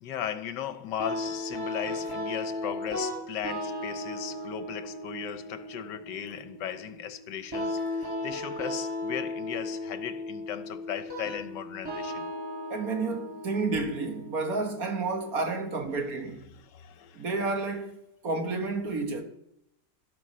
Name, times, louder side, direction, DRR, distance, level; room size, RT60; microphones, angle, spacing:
voice 1, 0.0-12.2 16.5-17.3, left 9 dB, 75° left, 1.5 m, -37 dB
sound 1, 1.0-15.9, left 1 dB, 10° right, 4.6 m, -36 dB
voice 2, 12.7-16.5 17.1-18.0 18.2-19.2, right 3 dB, 50° right, 1.9 m, -30 dB
12.5 x 12.0 x 5.6 m
omnidirectional pair, 2.0 m